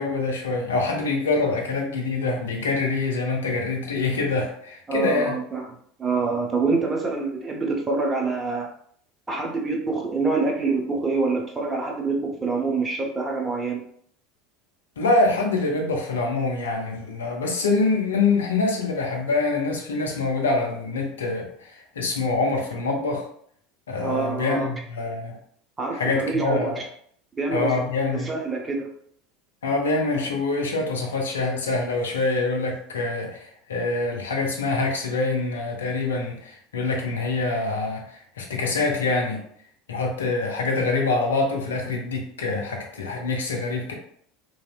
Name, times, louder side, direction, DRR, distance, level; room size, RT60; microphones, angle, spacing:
voice 1, 0.0-5.4 15.0-23.3 23.9-25.4 25.9-26.8 27.5-28.3 29.6-39.4 39.9-43.9, left 3 dB, 70° left, 1 dB, 0.6 m, -25 dB
voice 2, 4.9-5.7 6.0-8.7 9.3-13.8 24.0-24.7 25.8-26.8 27.4-27.7 28.1-29.0, right 3 dB, 20° right, 0 dB, 0.6 m, -26 dB
3.1 x 2.8 x 2.2 m, 0.63 s
figure-of-eight pair, 75°, 0 cm